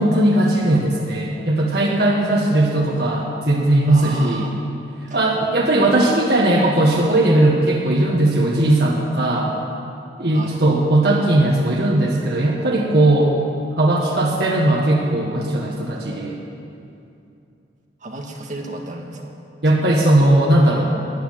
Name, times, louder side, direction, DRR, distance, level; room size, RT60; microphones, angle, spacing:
voice 1, 0.0-4.5 5.1-9.5 10.2-13.4 13.8-16.4 19.6-20.9, right 1 dB, 65° right, -2 dB, 1.5 m, -18 dB
voice 2, 3.9-4.5 5.1-5.2 10.3-10.6 18.0-19.4 19.7-20.0, right 1 dB, 45° right, 2 dB, 1.7 m, -33 dB
14.0 x 9.6 x 9.1 m, 2.6 s
head